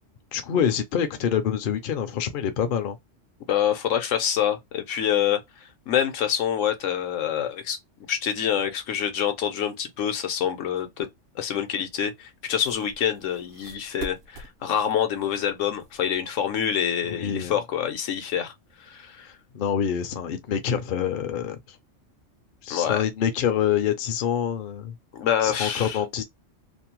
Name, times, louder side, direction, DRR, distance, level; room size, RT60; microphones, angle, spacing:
voice 1, 0.3-3.0 17.1-17.5 19.2-21.8 22.6-25.0 25.4-26.2, left 8 dB, 60° left, 0.6 m, -26 dB
voice 2, 3.5-5.4 5.9-7.8 8.1-11.1 11.4-18.5 18.8-19.3 22.7-23.0 25.1-26.0, left 9 dB, 80° left, 1.0 m, -26 dB
sound 1, 12.6-14.7 15.4-17.2, right 4 dB, 55° right, 0.6 m, -44 dB
2.7 x 2.1 x 2.9 m
omnidirectional pair, 1.3 m